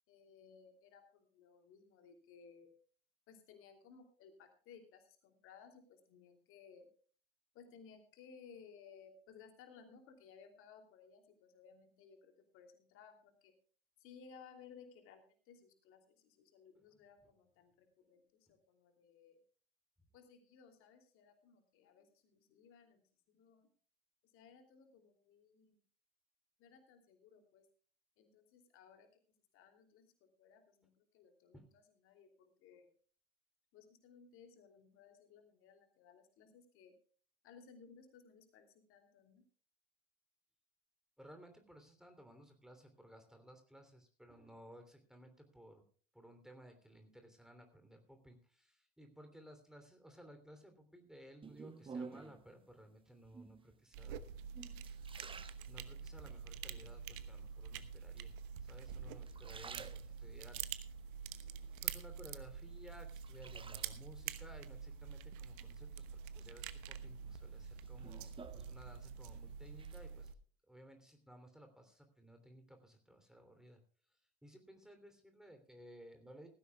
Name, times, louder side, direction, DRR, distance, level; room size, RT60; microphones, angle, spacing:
voice 1, 0.1-2.7 3.3-6.9 7.5-13.5 14.0-19.4 20.1-23.7 24.3-25.8 26.6-27.7 28.2-29.1 29.5-32.9 33.7-37.0 37.4-39.4, left 6 dB, 45° left, 5 dB, 3.0 m, -60 dB
voice 2, 41.2-45.8 46.1-54.2 55.7-58.3 58.6-60.6 61.8-70.3 70.7-73.8 74.4-76.5, equal, ahead, 6 dB, 3.1 m, -58 dB
sound 1, 51.4-52.5 53.3-53.8 54.3-56.3 56.8-57.4 58.2-58.8 59.2-60.5 61.0-62.2 62.6-64.2 65.6-66.2 66.7-69.3 69.5-70.0, right 5 dB, 20° right, 1.0 m, -53 dB
sound 2, 53.9-70.3, right 7 dB, 60° right, 1.1 m, -47 dB
18.5 x 15.0 x 2.3 m, 0.42 s
figure-of-eight pair, 80°, 29 cm